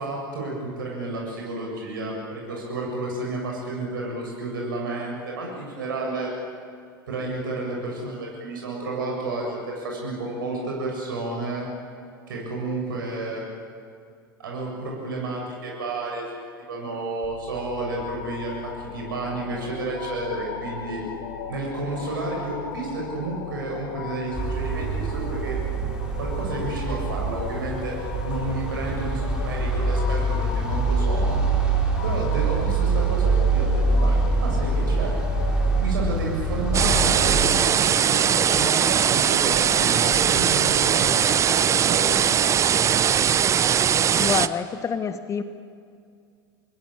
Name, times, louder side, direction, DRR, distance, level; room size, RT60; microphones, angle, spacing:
voice 1, 0.0-6.3 7.1-11.6 12.3-13.4 14.4-16.2 16.6-21.0 21.5-25.6 26.1-28.0 28.2-31.4 32.0-35.1 35.7-42.3, right 2 dB, 70° right, -2 dB, 7.6 m, -31 dB
sound 1, 17.2-35.8, left 6 dB, 55° left, 4.2 m, -37 dB
sound 2, 24.3-37.4, right 3 dB, 5° right, 5.2 m, -24 dB
sound 3, 36.7-44.5, right 8 dB, 25° right, 0.8 m, -20 dB
voice 2, 44.1-45.4, left 6 dB, 25° left, 10 dB, 1.4 m, -27 dB
28.0 x 21.0 x 8.9 m, 2.3 s
figure-of-eight pair, 85°, 12 cm